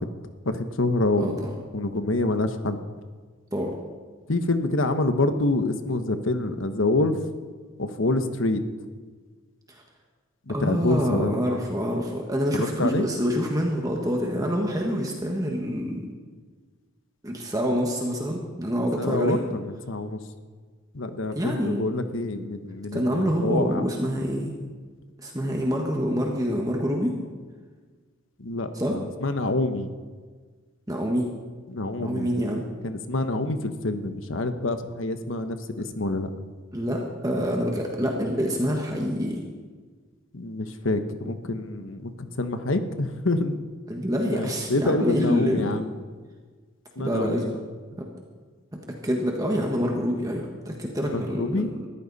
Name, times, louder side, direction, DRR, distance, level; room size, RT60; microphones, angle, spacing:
voice 1, 0.4-1.5 1.7-2.8 4.3-7.2 7.8-8.6 10.5-11.3 12.5-13.1 19.0-20.2 20.9-23.8 28.4-29.9 31.7-32.3 32.8-36.3 40.3-43.6 44.3-45.9 47.0-47.6 51.1-51.7, left 2 dB, 65° left, 9 dB, 1.1 m, -26 dB
voice 2, 1.2-1.5 3.5-3.7 10.5-16.1 17.2-19.4 21.3-21.8 22.9-24.5 25.2-27.2 28.7-29.0 30.9-31.4 32.0-32.7 36.7-39.4 43.9-45.7 47.0-47.5 48.0-48.1 48.9-51.7, equal, 15° right, 0 dB, 1.5 m, -26 dB
20.5 x 14.5 x 4.2 m, 1.5 s
head